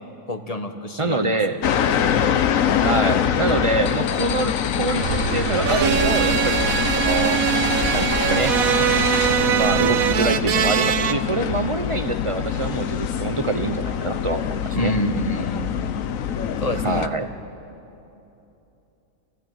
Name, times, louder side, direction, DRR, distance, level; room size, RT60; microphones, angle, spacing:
voice 1, 0.3-1.4 14.7-15.7 16.6-17.1, left 1 dB, 25° left, 6 dB, 1.5 m, -26 dB
voice 2, 1.0-1.6 2.8-7.4 7.9-8.6 9.5-14.9 16.8-17.3, right 3 dB, 35° right, 9 dB, 0.5 m, -25 dB
sound 1, 1.6-17.1, left 8 dB, 65° left, 1.2 m, -24 dB
sound 2, 5.0-10.2, right 6 dB, 55° right, 1.1 m, -29 dB
sound 3, 5.6-11.1, right 9 dB, 75° right, 1.2 m, -22 dB
29.5 x 16.0 x 9.2 m, 2.9 s
omnidirectional pair, 1.5 m